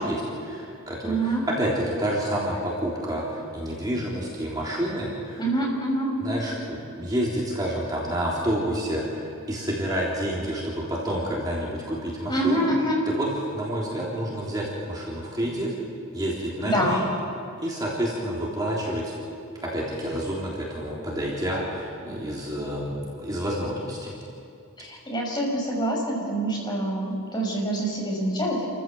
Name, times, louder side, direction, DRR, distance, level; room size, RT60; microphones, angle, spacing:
voice 1, 0.0-5.4 6.2-12.7 13.1-15.8 16.1-17.0 17.6-19.1 19.6-24.1, equal, 20° right, -5 dB, 3.5 m, -29 dB
voice 2, 1.0-1.4 5.4-6.1 12.3-13.0 16.6-17.0 24.8-28.7, right 1 dB, 20° left, -2 dB, 5.9 m, -26 dB
29.5 x 15.0 x 7.8 m, 2.5 s
head